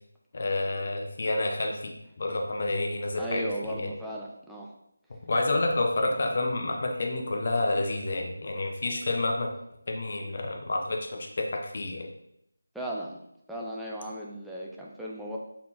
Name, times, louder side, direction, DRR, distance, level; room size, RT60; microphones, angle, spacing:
voice 1, 0.3-3.9 5.3-9.5 9.9-12.1, left 2 dB, 45° left, 1 dB, 0.7 m, -29 dB
voice 2, 3.2-4.7 12.7-13.2 13.5-15.4, right 1 dB, ahead, -5 dB, 0.3 m, -36 dB
4.0 x 3.7 x 2.8 m, 0.78 s
figure-of-eight pair, 170°, 0 cm